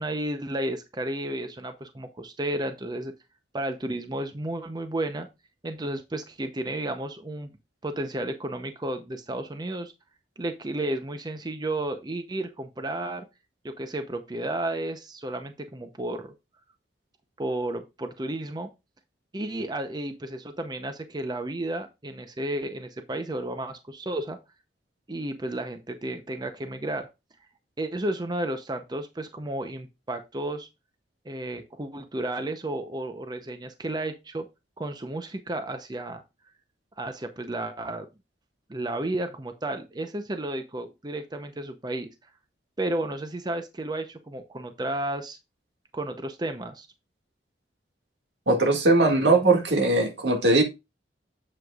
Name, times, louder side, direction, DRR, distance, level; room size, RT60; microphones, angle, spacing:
voice 1, 0.0-3.1 3.5-5.3 5.6-7.5 7.8-9.9 10.4-13.3 13.6-16.3 17.4-18.7 19.3-24.4 25.1-27.1 27.8-30.7 31.2-34.5 34.8-36.2 37.0-38.1 38.7-42.1 42.8-45.4 45.9-46.9, right 1 dB, 25° right, 0.6 m, -32 dB
voice 2, 48.5-50.6, right 2 dB, 80° right, 1.9 m, -20 dB
7.9 x 7.4 x 2.3 m
head